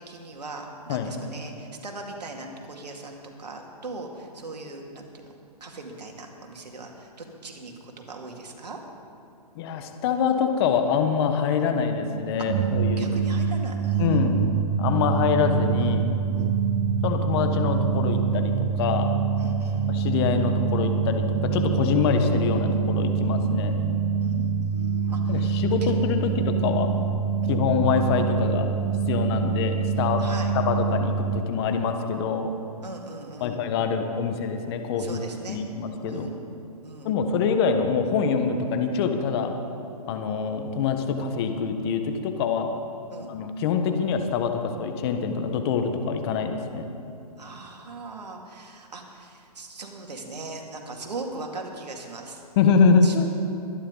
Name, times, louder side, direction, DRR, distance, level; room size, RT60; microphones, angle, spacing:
voice 1, 0.1-5.3 5.6-8.8 12.5-14.2 16.3-16.6 19.4-19.9 24.2-25.9 26.2-26.4 27.4-27.7 30.2-30.5 32.8-33.6 35.0-35.6 36.1-36.4 36.8-37.1 43.1-43.3 47.4-52.4 53.0-53.3, right 3 dB, 85° right, 2 dB, 2.4 m, -40 dB
voice 2, 9.5-13.1 14.0-14.4 14.8-16.0 17.0-19.2 19.9-23.8 25.3-26.9 27.5-28.7 29.1-30.2 30.7-32.5 33.4-35.2 35.5-36.3 37.0-39.5 40.1-42.7 43.3-46.9 52.6-53.3, left 6 dB, 40° left, 6 dB, 1.3 m, -25 dB
sound 1, 12.5-31.4, right 6 dB, 30° right, 0.5 m, -25 dB
23.0 x 10.0 x 4.0 m, 2.7 s
hypercardioid pair, 135°, 21 cm